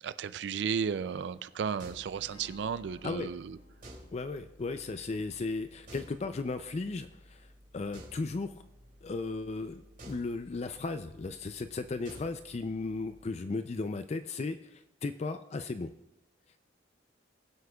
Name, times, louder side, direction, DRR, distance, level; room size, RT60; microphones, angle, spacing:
voice 1, 0.0-3.6, right 6 dB, 65° right, 14 dB, 0.3 m, -34 dB
sound 1, 0.7-13.3, equal, 45° right, 2.7 m, -54 dB
Strum, 2.2-6.4, equal, 85° left, 2.4 m, -61 dB
voice 2, 4.1-7.5 7.7-8.5 9.0-15.9, left 3 dB, 35° left, 9 dB, 0.4 m, -36 dB
21.0 x 7.9 x 2.3 m, 0.89 s
head